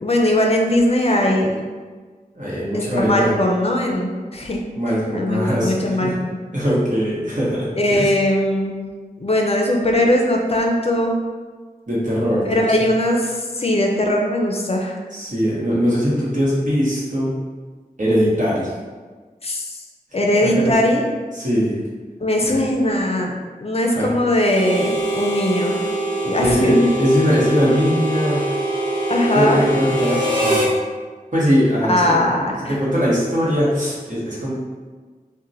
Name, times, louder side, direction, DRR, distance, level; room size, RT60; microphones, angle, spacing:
voice 1, 0.0-1.6 3.0-4.6 5.1-6.4 7.7-8.8 9.2-11.1 12.4-15.0 19.4-19.7 20.1-21.0 22.2-23.3 23.6-25.8 26.2-26.9 29.1-29.6 31.9-32.8, left 1 dB, 40° left, 1 dB, 0.4 m, -19 dB
voice 2, 2.3-3.3 4.8-6.2 6.5-8.1 11.9-12.9 15.1-17.3 18.0-18.7 20.4-20.7 21.3-21.8 22.4-22.5 23.9-24.1 26.4-28.5 29.3-30.7 31.3-34.5, equal, 55° right, -7 dB, 1.0 m, -20 dB
Harmonica, 24.4-30.7, right 1 dB, 30° right, 1.0 m, -23 dB
2.9 x 2.1 x 2.6 m, 1.4 s
wide cardioid pair, 50°, 15 cm